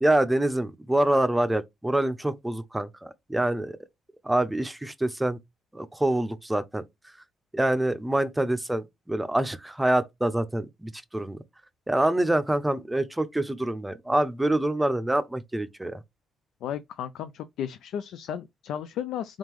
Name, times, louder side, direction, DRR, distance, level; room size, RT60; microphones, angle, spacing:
voice 1, 0.0-3.8 4.2-5.4 5.7-6.8 7.5-11.4 11.9-16.0, right 1 dB, 10° right, 0.6 m, -26 dB
voice 2, 16.6-19.4, left 9 dB, 80° left, 0.4 m, -34 dB
3.7 x 3.6 x 3.0 m
cardioid pair, 90°, 0 cm